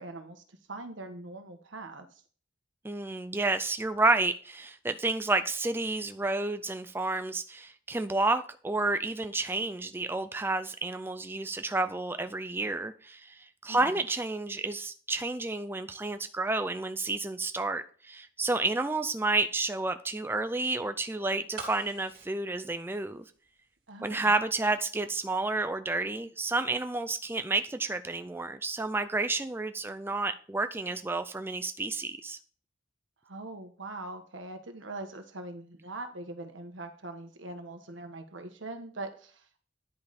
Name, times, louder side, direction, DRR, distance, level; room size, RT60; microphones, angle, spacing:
voice 1, 0.0-2.2 13.7-14.1 23.9-24.3 33.2-39.6, right 2 dB, 80° right, 6 dB, 1.4 m, -42 dB
voice 2, 2.8-23.2 24.0-32.4, right 2 dB, 10° right, 9 dB, 0.4 m, -30 dB
sound 1, 21.5-23.6 23.9-24.0, right 4 dB, 55° right, 2.6 m, -44 dB
10.5 x 5.3 x 4.2 m, 0.42 s
head